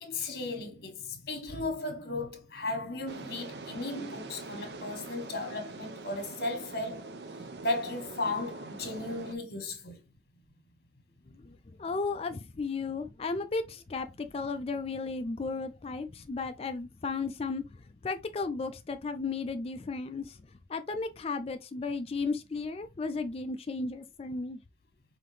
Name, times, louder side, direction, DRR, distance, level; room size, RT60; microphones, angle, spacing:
voice 1, 0.0-7.1 7.6-10.0, left 2 dB, 55° left, 1.4 m, -35 dB
sound 1, 3.1-9.3, right 3 dB, 65° right, 0.6 m, -43 dB
voice 2, 11.8-17.6 18.0-20.4 20.7-24.6, left 4 dB, 30° left, 0.3 m, -34 dB
5.6 x 2.8 x 3.2 m
head